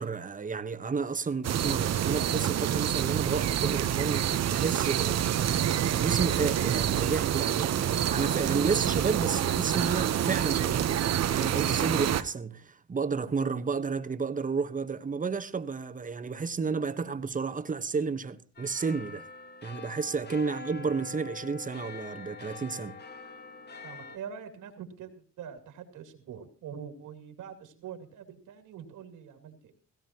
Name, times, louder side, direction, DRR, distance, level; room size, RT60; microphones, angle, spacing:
voice 1, 0.0-5.2 5.9-10.9 11.4-19.3 19.6-22.9, right 5 dB, 25° right, 1.2 m, -31 dB
sound 1, 1.4-12.2, right 10 dB, 60° right, 0.9 m, -27 dB
sound 2, 18.6-24.2, left 5 dB, 35° left, 1.3 m, -44 dB
voice 2, 23.8-25.1 25.4-29.7, right 8 dB, 85° right, 2.6 m, -44 dB
17.0 x 16.5 x 2.9 m
cardioid pair, 90°, 30 cm